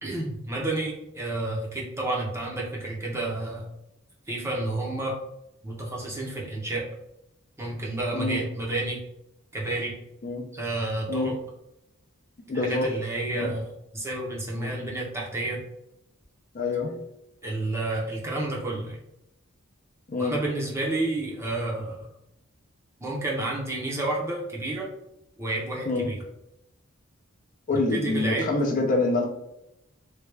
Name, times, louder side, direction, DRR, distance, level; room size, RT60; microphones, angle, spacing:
voice 1, 0.0-3.7 4.3-5.2 5.6-6.9 7.6-9.0 9.5-9.9 10.5-11.3 12.5-15.6 17.4-19.0 20.2-22.1 23.0-24.9 25.4-26.2 27.9-28.5, right 2 dB, 15° right, -3 dB, 0.6 m, -30 dB
voice 2, 12.5-12.9 13.3-13.5 14.5-14.7 16.5-16.9 20.1-20.3 25.9-26.1 27.7-29.3, left 3 dB, 40° left, 1 dB, 0.5 m, -26 dB
3.2 x 2.3 x 3.2 m, 0.83 s
head